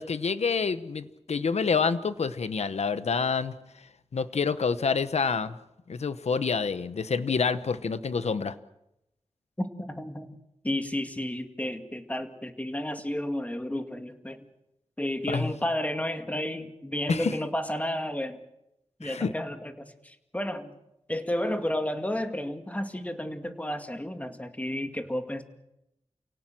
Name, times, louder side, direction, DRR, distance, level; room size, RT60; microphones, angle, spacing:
voice 1, 0.0-3.5 4.1-5.6 5.9-8.5 15.3-15.5 17.1-17.4 19.0-19.3, left 5 dB, 80° left, 12 dB, 1.1 m, -27 dB
voice 2, 9.6-10.3 10.6-14.4 15.0-18.4 19.0-20.8 21.1-25.4, left 1 dB, 15° left, 6 dB, 2.2 m, -32 dB
29.0 x 17.5 x 7.7 m, 0.87 s
wide cardioid pair, 85°, 11 cm